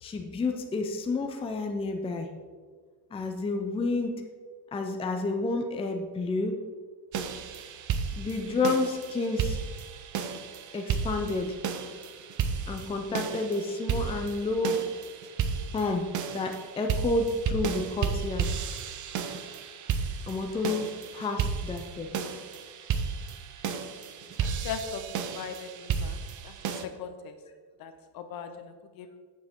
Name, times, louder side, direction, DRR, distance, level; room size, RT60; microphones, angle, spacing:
voice 1, 0.0-2.3 3.1-4.2 4.7-6.6 8.2-9.6 10.7-11.6 12.7-14.9 15.7-16.1 16.3-18.5 20.2-22.2, left 2 dB, 15° left, 4 dB, 0.5 m, -30 dB
sound 1, 7.1-26.8, right 6 dB, 45° right, 0.7 m, -33 dB
voice 2, 24.6-25.0 25.3-26.2 26.4-26.5 26.8-27.4 27.8-29.2, left 6 dB, 55° left, 8 dB, 0.9 m, -39 dB
8.8 x 7.5 x 3.6 m, 1.5 s
cardioid pair, 135°, 44 cm